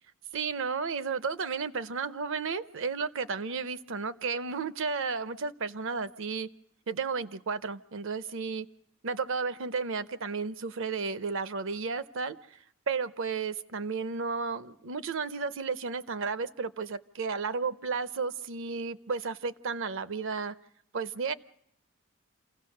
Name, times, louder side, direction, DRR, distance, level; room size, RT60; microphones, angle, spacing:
voice 1, 0.3-6.5 6.9-8.7 9.0-12.4 12.9-20.5 20.9-21.3, right 5 dB, 65° right, 0.7 m, -33 dB
28.0 x 16.5 x 6.5 m
head